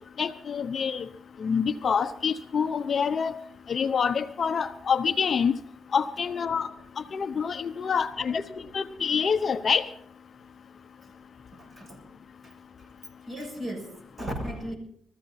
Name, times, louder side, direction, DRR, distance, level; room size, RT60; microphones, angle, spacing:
voice 1, 0.2-1.0 1.4-3.3 3.7-5.5 5.9-6.7 7.1-8.4 8.7-9.8, left 6 dB, 50° left, 10 dB, 0.8 m, -26 dB
voice 2, 8.3-8.6 11.5-12.1 12.4-12.9 13.2-14.8, equal, 30° right, 2 dB, 6.7 m, -38 dB
21.0 x 14.5 x 4.2 m, 0.67 s
cardioid pair, 90°, 0 cm